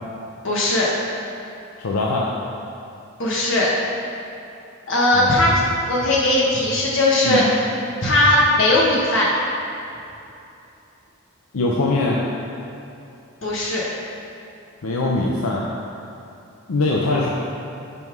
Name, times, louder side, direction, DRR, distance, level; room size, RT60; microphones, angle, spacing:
voice 1, 0.4-0.9 3.2-3.7 4.9-7.4 8.0-9.3 13.4-13.9, left 1 dB, 60° left, -5 dB, 1.4 m, -18 dB
voice 2, 1.8-2.4 5.1-5.4 7.2-7.5 11.5-12.3 14.8-15.7 16.7-17.3, left 2 dB, 85° left, -3 dB, 0.6 m, -22 dB
5.5 x 5.4 x 4.6 m, 2.7 s
head